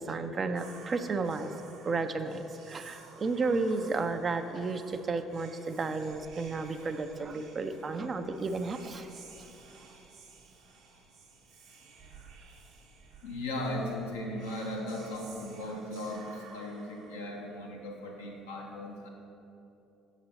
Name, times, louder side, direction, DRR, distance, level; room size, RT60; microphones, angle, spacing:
voice 1, 0.0-1.6 1.8-9.1, right 3 dB, 35° right, 8 dB, 0.4 m, -32 dB
Whispering, 0.5-17.7, right 5 dB, 65° right, 0.9 m, -54 dB
voice 2, 13.2-19.1, left 1 dB, 80° left, -1 dB, 0.8 m, -37 dB
6.6 x 4.0 x 5.6 m, 2.8 s
hypercardioid pair, 55°, 0 cm